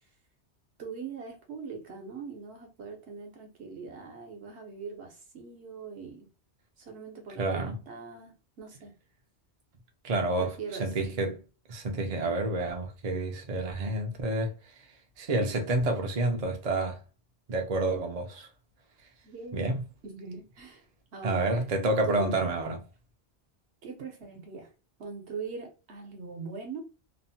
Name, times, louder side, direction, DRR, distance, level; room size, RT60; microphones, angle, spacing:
voice 1, 0.8-6.3 6.8-8.9 10.4-10.9 19.2-19.8 20.0-20.8 21.1-22.5 23.8-24.7 25.0-26.8, right 5 dB, 70° right, 1.1 m, -41 dB
voice 2, 7.4-7.8 10.0-10.5 10.8-11.4 11.7-14.5 15.2-17.0 17.5-18.5 19.5-19.8 21.2-22.8, right 2 dB, 45° right, 0.6 m, -29 dB
2.9 x 2.1 x 2.6 m
omnidirectional pair, 1.2 m